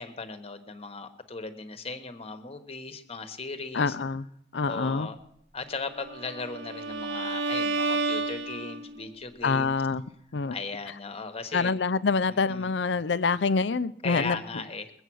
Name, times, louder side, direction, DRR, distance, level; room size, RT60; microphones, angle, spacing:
voice 1, 0.0-4.0 4.7-5.2 5.5-9.8 10.5-11.8 12.3-12.8 14.0-14.9, left 4 dB, 35° left, 1.3 m, -37 dB
voice 2, 3.7-4.2 4.5-5.1 9.4-10.0 10.3-10.6 11.5-14.4, left 4 dB, 80° left, 0.6 m, -26 dB
Bowed string instrument, 6.0-9.1, right 3 dB, 85° right, 1.0 m, -31 dB
21.5 x 8.0 x 6.3 m
head